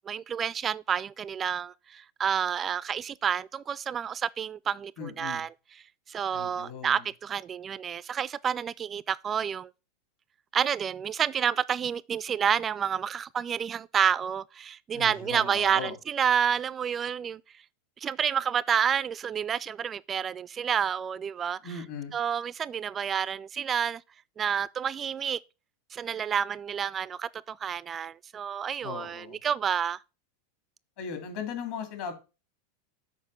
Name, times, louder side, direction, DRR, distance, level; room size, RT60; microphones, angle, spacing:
voice 1, 0.1-5.5 6.1-9.7 10.5-17.4 18.0-21.6 22.1-24.0 24.4-25.4 25.9-30.0, right 8 dB, 30° right, 0.3 m, -29 dB
voice 2, 5.0-5.4 6.3-7.0 14.9-15.9 21.6-22.1 28.8-29.4 31.0-32.1, left 6 dB, 60° left, 2.8 m, -38 dB
7.2 x 4.4 x 6.7 m
hypercardioid pair, 100°, 0 cm